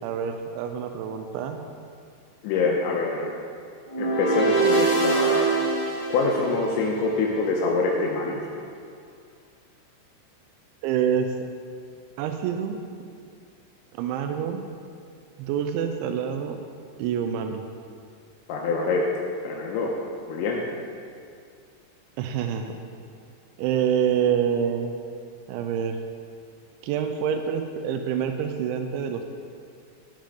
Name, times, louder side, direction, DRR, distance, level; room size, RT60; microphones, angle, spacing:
voice 1, 0.0-1.7 10.8-11.3 12.2-12.8 13.9-14.6 15.4-16.6 17.0-17.6 22.2-22.7 23.6-24.9 25.5-26.0 26.8-29.2, right 8 dB, 90° right, 6 dB, 3.0 m, -26 dB
voice 2, 2.4-3.3 4.0-5.5 6.1-8.4 18.5-19.1 19.4-19.9 20.3-20.6, left 3 dB, 90° left, -2 dB, 3.1 m, -25 dB
sound 1, 3.9-7.1, right 3 dB, 45° left, 0.4 m, -24 dB
12.5 x 8.8 x 3.7 m, 2.3 s
omnidirectional pair, 5.2 m